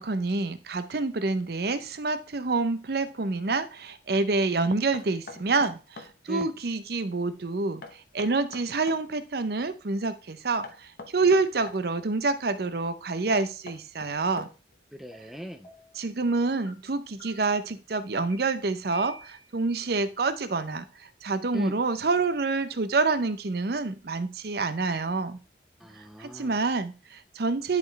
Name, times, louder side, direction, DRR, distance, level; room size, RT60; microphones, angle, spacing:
voice 1, 0.0-14.5 16.0-25.4 26.2-27.8, right 3 dB, 55° right, 11 dB, 0.6 m, -27 dB
Knock, 4.9-6.2 7.8-9.0 10.6-11.8 13.3-14.8, left 3 dB, 55° left, 0.8 m, -44 dB
voice 2, 14.9-15.7 21.5-21.8 25.8-26.6, equal, ahead, 6 dB, 0.4 m, -38 dB
sound 1, 15.1-15.2 15.6-16.0 16.7-16.8 17.2-17.7 18.3-18.4 18.9-19.5, right 1 dB, 30° left, 3.7 m, -48 dB
10.5 x 4.3 x 3.1 m, 0.33 s
head